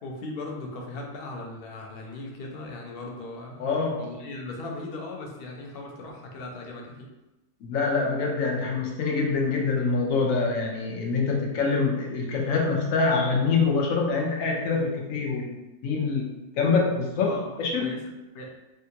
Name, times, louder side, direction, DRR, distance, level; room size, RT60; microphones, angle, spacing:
voice 1, 0.0-7.1 17.1-17.5 17.8-18.0 18.3-18.5, left 2 dB, 60° left, 0 dB, 0.7 m, -38 dB
voice 2, 3.6-4.0 7.6-16.3 16.6-17.8, left 4 dB, 85° left, -1 dB, 1.1 m, -25 dB
3.6 x 2.3 x 2.7 m, 1.0 s
omnidirectional pair, 1.3 m